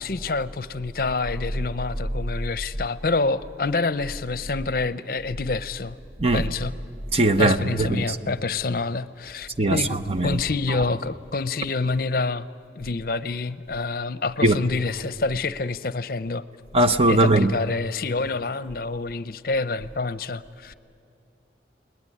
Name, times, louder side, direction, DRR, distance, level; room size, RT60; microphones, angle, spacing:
voice 1, 0.0-6.0 6.3-6.7 7.4-12.5 12.8-16.4 17.1-20.7, left 3 dB, 55° left, 0.6 m, -27 dB
voice 2, 7.1-8.3 9.6-10.4 10.7-10.8 14.4-14.6 16.7-17.5, right 2 dB, 35° right, 0.8 m, -20 dB
30.0 x 20.0 x 9.9 m
head